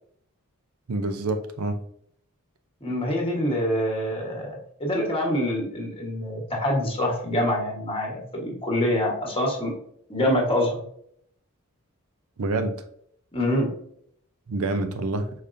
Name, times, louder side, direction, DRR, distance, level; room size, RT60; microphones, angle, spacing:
voice 1, 0.9-1.8 12.4-12.8 14.5-15.3, right 2 dB, 75° right, 8 dB, 0.6 m, -27 dB
voice 2, 2.8-9.7 10.1-10.8 13.3-13.7, left 1 dB, 25° left, 0 dB, 1.3 m, -25 dB
5.1 x 4.0 x 2.6 m, 0.68 s
head